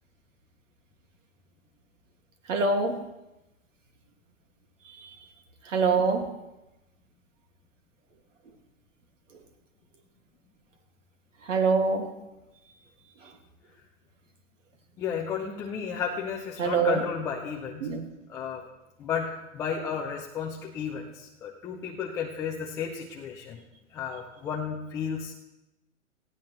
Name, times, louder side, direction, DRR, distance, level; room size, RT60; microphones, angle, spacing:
voice 1, 2.5-3.0 5.0-5.1 5.7-6.3 11.5-12.1 16.6-17.0 17.8-18.0, right 4 dB, 70° right, 6 dB, 2.0 m, -24 dB
voice 2, 15.0-17.9 18.3-18.7 19.0-23.6 23.9-25.3, left 7 dB, 10° left, -1 dB, 0.3 m, -33 dB
18.5 x 15.0 x 3.0 m, 0.96 s
figure-of-eight pair, 110°, 39 cm